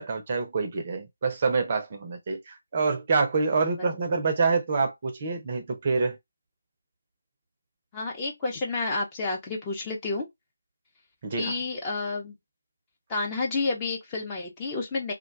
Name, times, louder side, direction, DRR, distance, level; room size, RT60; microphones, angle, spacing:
voice 1, 0.0-6.2 11.2-11.5, right 4 dB, 30° right, 0.6 m, -26 dB
voice 2, 7.9-10.3 11.4-12.3 13.1-15.1, left 3 dB, 15° left, 0.8 m, -30 dB
2.4 x 2.2 x 3.9 m
figure-of-eight pair, 155°, 0 cm